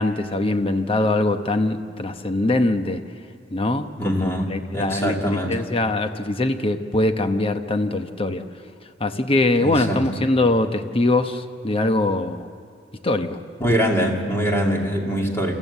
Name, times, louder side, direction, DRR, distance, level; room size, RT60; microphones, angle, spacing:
voice 1, 0.0-3.0 3.5-8.4 9.0-12.5 13.0-13.4, left 2 dB, 30° left, 8 dB, 1.0 m, -22 dB
voice 2, 4.0-5.6 9.6-10.1 13.6-15.5, equal, 15° left, 0 dB, 2.5 m, -23 dB
27.0 x 15.0 x 8.2 m, 2.3 s
head